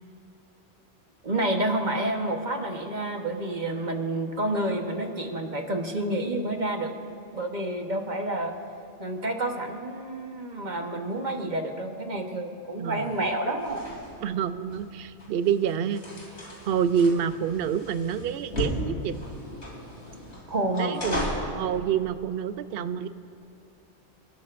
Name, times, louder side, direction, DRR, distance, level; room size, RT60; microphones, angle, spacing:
voice 1, 1.2-6.9 7.3-8.5 9.0-13.8 20.5-21.2, right 1 dB, 40° right, 3 dB, 1.3 m, -29 dB
sound 1, 13.0-21.6, equal, 75° left, 3.4 m, -36 dB
voice 2, 14.2-16.0 16.7-19.1 20.8-21.2 21.5-23.1, right 7 dB, 65° right, 12 dB, 0.8 m, -27 dB
29.0 x 12.5 x 2.5 m, 2.8 s
omnidirectional pair, 1.1 m